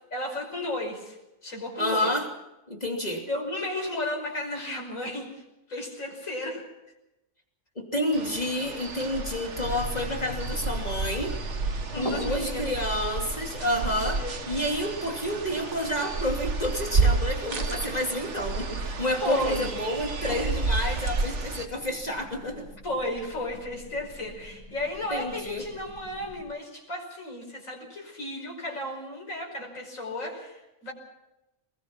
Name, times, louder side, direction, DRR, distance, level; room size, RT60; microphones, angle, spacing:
voice 1, 0.1-2.1 3.2-5.4 5.7-6.6 11.9-12.6 14.1-14.3 19.2-19.7 22.8-30.9, left 1 dB, 80° left, -1 dB, 5.8 m, -33 dB
voice 2, 1.8-2.3 2.7-3.3 7.8-11.4 12.0-22.7 25.1-25.6, left 1 dB, 30° left, 1 dB, 3.0 m, -29 dB
sound 1, 8.1-21.7, right 4 dB, 60° right, 1.8 m, -31 dB
sound 2, 9.6-26.4, equal, 50° left, 7.9 m, -42 dB
22.0 x 21.5 x 6.0 m, 0.94 s
omnidirectional pair, 1.4 m